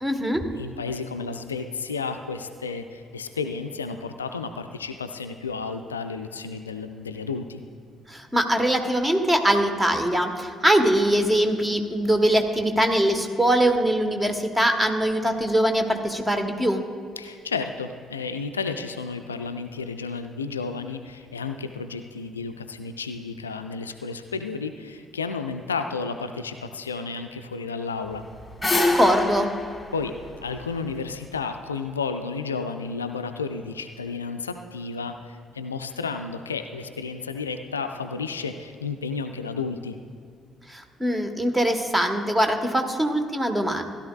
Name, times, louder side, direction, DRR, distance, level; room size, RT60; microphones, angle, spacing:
voice 1, 0.0-0.4 8.1-16.8 28.7-29.5 40.7-43.8, right 1 dB, 15° right, 6 dB, 1.2 m, -22 dB
voice 2, 0.6-7.6 17.2-28.2 29.9-30.1 30.4-40.0, left 4 dB, 85° left, 8 dB, 0.3 m, -32 dB
sound 1, 28.1-31.3, left 2 dB, 20° left, 1.5 m, -26 dB
16.0 x 11.0 x 2.3 m, 2.2 s
figure-of-eight pair, 45°, 0 cm